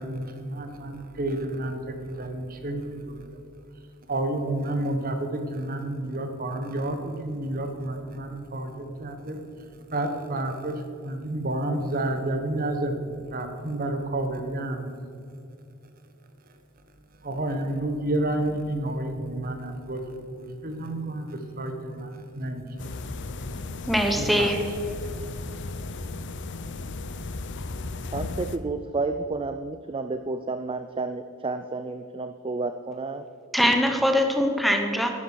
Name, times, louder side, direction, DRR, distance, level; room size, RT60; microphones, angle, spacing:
voice 1, 0.0-3.4 4.1-15.0 15.3-15.4 17.1-23.9 24.1-25.2, right 1 dB, 40° right, 6 dB, 1.2 m, -31 dB
sound 1, 22.8-28.6, left 3 dB, 55° left, 0.6 m, -35 dB
voice 2, 23.9-24.6 33.5-35.1, equal, ahead, 4 dB, 0.9 m, -22 dB
voice 3, 28.1-33.2, right 3 dB, 25° right, 9 dB, 0.4 m, -31 dB
11.0 x 10.0 x 6.3 m, 2.6 s
head